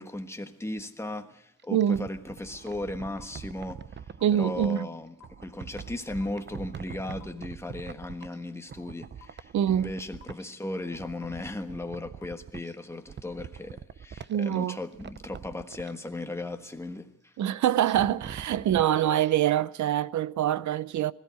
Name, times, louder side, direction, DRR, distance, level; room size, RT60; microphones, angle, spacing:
voice 1, 0.0-3.8 4.4-17.3, left 2 dB, 10° left, 1.3 m, -36 dB
sound 1, 1.6-4.7 5.2-8.4 8.7-10.5 10.8-12.7 13.1-14.6 14.9-15.9 17.8-18.9 19.2-19.3, right 7 dB, 40° right, 0.7 m, -43 dB
voice 2, 1.7-2.1 4.2-4.9 9.5-9.9 14.3-14.8 17.4-21.1, right 11 dB, 75° right, 0.7 m, -25 dB
sound 2, 3.2-3.3 4.2-4.3 5.2-5.3 6.2-6.3 7.2-7.3 8.2-8.3 9.2-9.3 10.2-10.3 11.2-11.3 12.2-12.3, left 9 dB, 70° left, 1.5 m, -50 dB
21.0 x 14.5 x 9.5 m
wide cardioid pair, 150°, 29 cm